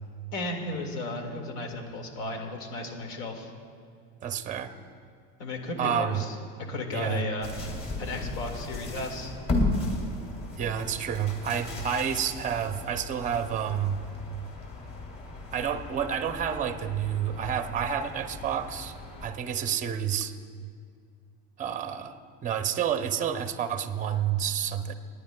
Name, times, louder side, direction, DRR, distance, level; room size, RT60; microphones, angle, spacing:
voice 1, 0.3-3.5 5.4-6.3 6.7-7.5 8.0-9.3, left 2 dB, 80° left, 3 dB, 2.0 m, -34 dB
voice 2, 4.2-4.7 5.8-6.2 6.9-7.2 10.6-14.0 15.5-18.9 19.2-20.3 21.6-24.9, right 8 dB, 15° right, 8 dB, 0.5 m, -29 dB
sound 1, 7.4-19.3, left 2 dB, 35° left, 2.4 m, -35 dB
29.5 x 10.0 x 2.2 m, 2.2 s
supercardioid pair, 140°, 48 cm